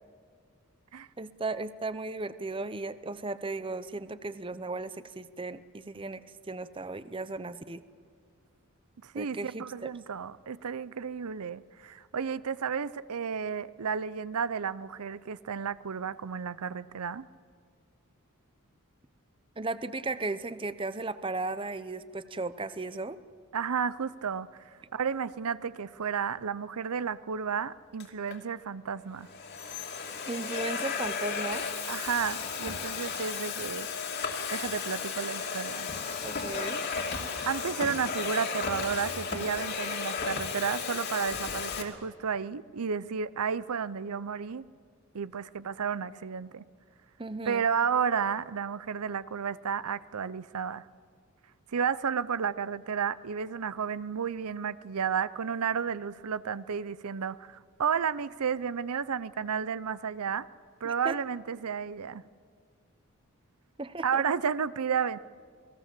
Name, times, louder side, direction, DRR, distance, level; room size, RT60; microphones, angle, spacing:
voice 1, 1.2-6.2 6.5-7.8 9.1-9.9 19.6-23.2 30.3-31.7 36.2-36.8 47.2-47.7 60.8-61.2 63.8-64.2, right 3 dB, 25° right, 14 dB, 0.7 m, -36 dB
voice 2, 9.0-17.3 23.5-29.3 31.9-33.9 34.5-35.9 37.5-44.7 45.1-46.6 47.5-50.8 51.7-60.5 60.8-62.2 64.0-65.2, right 6 dB, 85° right, 17 dB, 0.6 m, -32 dB
Domestic sounds home sounds, 28.0-28.4 29.1-41.8, left 5 dB, 45° left, 2.8 m, -34 dB
29.0 x 19.5 x 7.6 m, 2.1 s
head